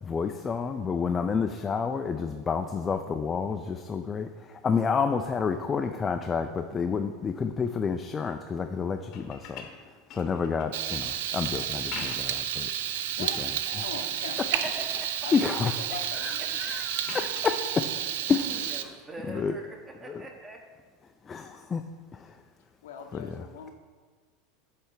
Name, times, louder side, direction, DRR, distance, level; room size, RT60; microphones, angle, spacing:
voice 1, 0.0-12.7 13.4-13.5 15.3-15.7 16.1-17.9 18.3-18.9 19.3-19.5 20.1-20.2 21.2-21.8 22.1-22.4 23.1-23.7, left 5 dB, 25° left, 6 dB, 0.3 m, -30 dB
sound 1, 9.1-10.8 11.7-12.5 12.9-13.6 14.1-14.6 14.9-15.6 17.0-17.6 19.4-19.5, left 6 dB, 55° left, 0.8 m, -45 dB
Frying (food), 10.7-18.8, right 10 dB, 80° right, 0.3 m, -31 dB
voice 2, 13.1-14.5 15.2-15.5 15.9-16.8 22.8-23.7, left 6 dB, 85° left, 4 dB, 0.8 m, -42 dB
voice 3, 14.5-15.1 16.4-16.7 18.4-20.6, right 2 dB, 20° right, 2 dB, 1.0 m, -41 dB
8.1 x 3.3 x 4.5 m, 1.5 s
supercardioid pair, 115°, 0 cm